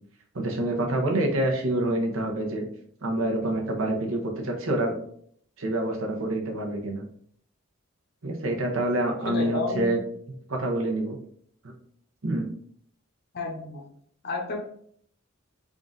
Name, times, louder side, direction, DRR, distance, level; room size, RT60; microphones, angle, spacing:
voice 1, 0.3-2.7 3.0-5.0 5.6-7.0 8.2-10.0 10.5-11.2 12.2-12.5, right 1 dB, 80° right, 1 dB, 0.9 m, -27 dB
voice 2, 9.2-9.9 13.3-13.9 14.2-14.6, left 3 dB, 50° left, 0 dB, 0.6 m, -30 dB
3.7 x 2.5 x 3.7 m, 0.63 s
head